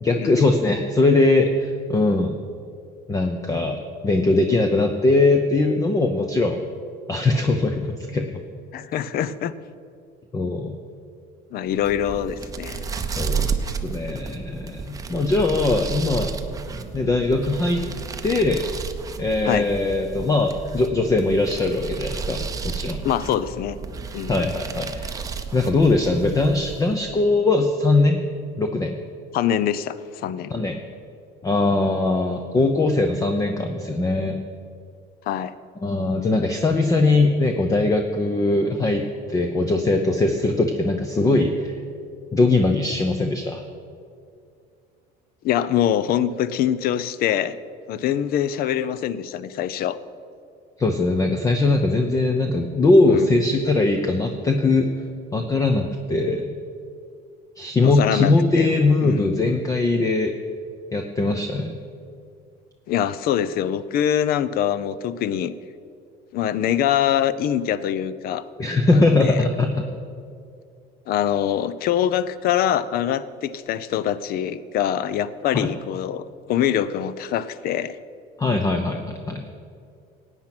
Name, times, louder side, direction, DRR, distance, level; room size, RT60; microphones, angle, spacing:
voice 1, 0.0-2.3 3.1-6.6 7.1-8.4 10.3-10.8 13.2-13.5 13.8-16.3 16.9-17.8 18.2-18.6 19.2-23.0 24.3-25.2 25.5-28.2 28.6-29.0 30.5-30.8 31.4-34.4 35.8-41.7 42.3-43.6 50.8-54.9 55.3-56.5 57.6-60.3 60.9-61.8 68.6-69.9 75.5-75.7 78.4-79.4, left 2 dB, 15° left, 5 dB, 0.7 m, -21 dB
voice 2, 8.7-9.5 11.5-12.9 19.5-19.7 23.0-23.8 24.1-24.3 29.3-30.5 35.3-35.5 45.4-47.6 47.9-50.0 53.1-53.4 57.8-59.3 62.9-65.5 66.3-68.5 68.9-69.5 71.1-78.0, left 10 dB, 50° left, 16 dB, 0.6 m, -24 dB
sound 1, 11.7-27.2, right 5 dB, 20° right, 0.7 m, -32 dB
16.5 x 9.1 x 6.0 m, 2.4 s
cardioid pair, 150°, 19 cm